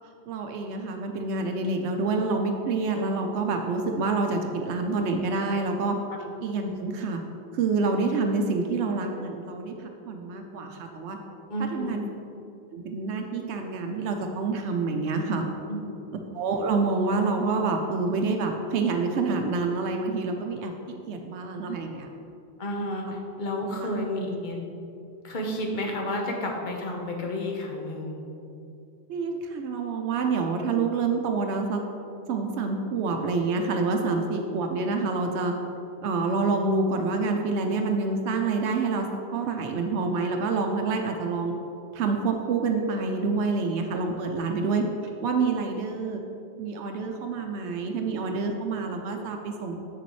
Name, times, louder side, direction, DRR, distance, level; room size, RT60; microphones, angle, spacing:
voice 1, 0.3-6.0 6.4-7.2 7.5-11.2 11.7-12.0 12.7-15.4 16.3-20.7 21.1-22.1 23.8-23.9 29.1-31.8 32.3-35.5 36.0-41.5 41.9-44.9 45.2-46.2 46.6-49.8, right 4 dB, 85° right, 3 dB, 0.9 m, -27 dB
voice 2, 11.5-12.0 15.7-15.8 22.6-24.6 25.2-28.2, left 1 dB, 45° left, 0 dB, 1.1 m, -31 dB
7.3 x 6.8 x 3.1 m, 2.8 s
omnidirectional pair, 1.1 m